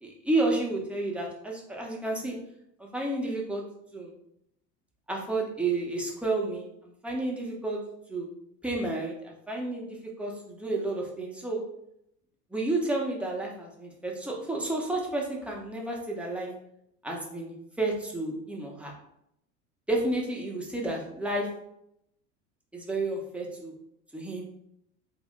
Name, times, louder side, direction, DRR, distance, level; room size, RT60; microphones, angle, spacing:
voice 1, 0.0-2.4 2.8-3.6 3.9-4.1 5.1-7.8 8.1-8.3 8.6-11.6 12.5-16.5 17.0-18.9 19.9-21.5 22.7-23.7 24.1-24.4, right 2 dB, 5° right, -2 dB, 0.9 m, -31 dB
3.2 x 2.6 x 3.8 m, 0.77 s
hypercardioid pair, 70°, 47 cm